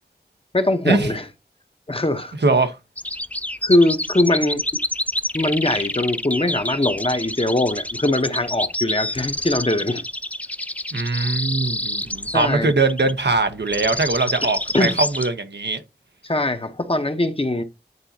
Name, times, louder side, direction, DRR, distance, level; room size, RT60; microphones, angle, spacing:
voice 1, 0.5-1.3 1.9-2.3 3.6-4.6 5.3-10.1 12.3-12.7 14.7-14.9 16.2-17.6, left 1 dB, 35° left, 0.9 m, -21 dB
voice 2, 2.4-2.8 10.9-15.8, right 3 dB, 85° right, 0.9 m, -21 dB
sound 1, 3.0-15.3, left 1 dB, 10° left, 0.3 m, -28 dB
9.6 x 4.0 x 2.7 m
wide cardioid pair, 50°, 17 cm